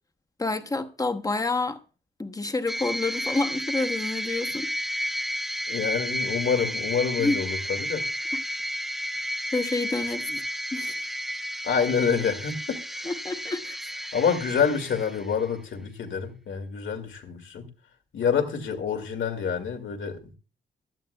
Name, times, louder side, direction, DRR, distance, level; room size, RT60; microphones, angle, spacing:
voice 1, 0.4-1.8 2.2-4.7 7.2-7.4 8.3-8.4 9.5-10.4 10.7-11.0 13.0-13.8, left 3 dB, 20° left, 0.9 m, -28 dB
sound 1, 2.7-15.5, equal, ahead, 0.6 m, -32 dB
voice 2, 5.7-8.0 11.6-13.1 14.1-17.7 18.1-20.4, left 6 dB, 90° left, 2.2 m, -27 dB
16.5 x 13.5 x 2.2 m
wide cardioid pair, 160°, 19 cm